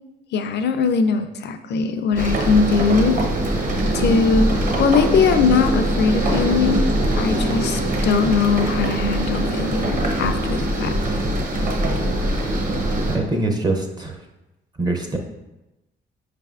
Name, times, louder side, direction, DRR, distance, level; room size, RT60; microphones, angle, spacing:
voice 1, 0.3-3.2 3.9-6.9 7.2-11.0, left 5 dB, 60° left, 9 dB, 0.4 m, -20 dB
sound 1, 2.1-13.2, right 1 dB, 40° right, 0.8 m, -22 dB
voice 2, 13.1-14.2 14.8-15.2, right 2 dB, 20° right, 3 dB, 0.5 m, -23 dB
4.9 x 3.3 x 2.4 m, 1.0 s
cardioid pair, 90°, 20 cm